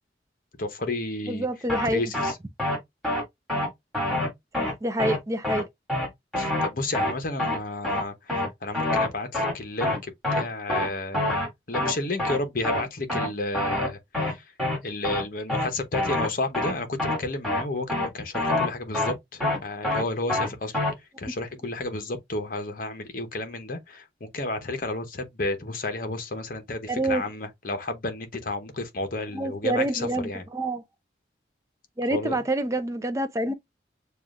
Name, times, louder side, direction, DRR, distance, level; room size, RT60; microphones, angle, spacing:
voice 1, 0.6-1.5 1.9-2.4 6.4-11.4 11.7-14.4 14.8-20.8 21.2-30.5 32.1-32.4, left 2 dB, 50° left, 0.9 m, -32 dB
voice 2, 1.3-2.0 4.5-5.7 21.2-21.3 26.9-27.2 29.3-30.8 32.0-33.5, right 1 dB, 15° right, 0.5 m, -27 dB
sound 1, 1.7-1.9 2.1-2.3 2.6-2.8 3.0-3.2 3.5-3.7 3.9-4.3 4.5-4.7 5.0-5.2 5.4-5.6 5.9-6.1 6.3-6.7 6.9-7.1 7.4-7.6 7.8-8.0 8.3-8.5 8.7-9.1 9.3-9.5 9.8-10.0 10.2-10.4 10.7-10.9 11.1-11.5 11.7-11.9 12.2-12.4 12.6-12.8 13.1-13.3 13.5-13.9 14.1-14.3 14.6-14.8 15.0-15.2 15.5-15.7 15.9-16.3 16.5-16.7 17.0-17.2 17.4-17.6 17.9-18.1 18.3-18.7 18.9-19.1 19.4-19.6 19.8-20.0 20.3-20.5 20.7-20.9, left 1 dB, ahead, 2.1 m, -25 dB
6.8 x 2.4 x 2.4 m
head